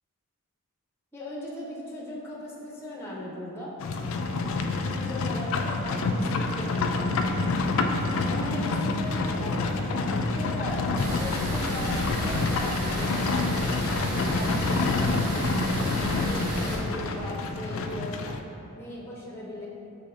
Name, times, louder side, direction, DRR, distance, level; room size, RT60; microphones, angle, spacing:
voice 1, 1.1-3.7 4.7-7.2 8.2-10.8 11.2-15.1 15.7-18.2 18.7-19.7, equal, 10° left, -5 dB, 0.6 m, -38 dB
Livestock farm animals working animals, 3.8-18.4, left 3 dB, 60° left, 0.3 m, -27 dB
sound 1, 11.0-16.8, right 1 dB, 85° right, 0.8 m, -33 dB
6.6 x 3.2 x 2.5 m, 2.8 s
head